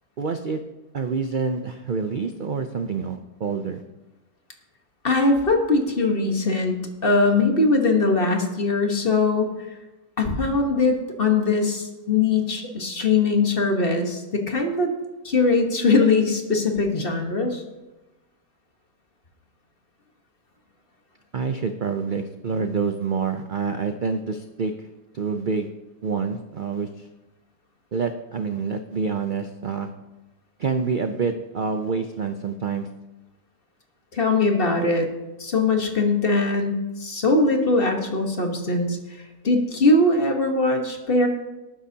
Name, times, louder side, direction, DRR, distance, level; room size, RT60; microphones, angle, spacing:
voice 1, 0.2-0.6 0.9-3.8 21.3-24.9 25.1-25.7 26.0-27.1 27.9-29.9 30.6-32.9, right 5 dB, 55° right, 7 dB, 0.5 m, -27 dB
voice 2, 5.0-6.8 7.0-9.5 10.2-14.9 15.2-17.6 34.1-35.1 35.4-39.0 39.4-41.3, left 3 dB, 40° left, 3 dB, 1.5 m, -21 dB
19.0 x 9.6 x 2.8 m, 1.1 s
omnidirectional pair, 1.6 m